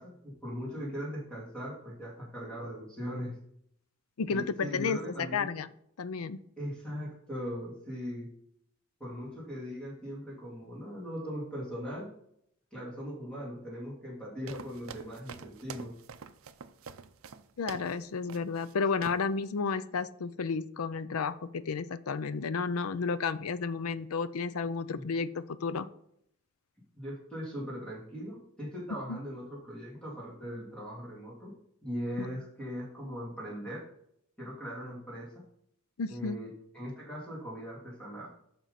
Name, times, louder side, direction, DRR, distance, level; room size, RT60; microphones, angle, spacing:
voice 1, 0.0-3.4 4.3-5.5 6.6-8.3 9.0-12.1 12.7-15.9 24.9-25.1 26.9-31.5 31.8-33.8 34.4-35.3 36.1-36.5 36.7-38.3, equal, 5° left, -6 dB, 2.8 m, -39 dB
voice 2, 4.2-5.7 6.0-6.4 17.6-25.9 29.1-29.2 32.2-32.4 36.0-36.4, left 5 dB, 85° left, 14 dB, 0.5 m, -32 dB
sound 1, 14.5-18.0 18.3-18.7 19.0-19.3, right 6 dB, 70° right, 0.5 m, -46 dB
9.2 x 6.1 x 4.1 m, 0.72 s
head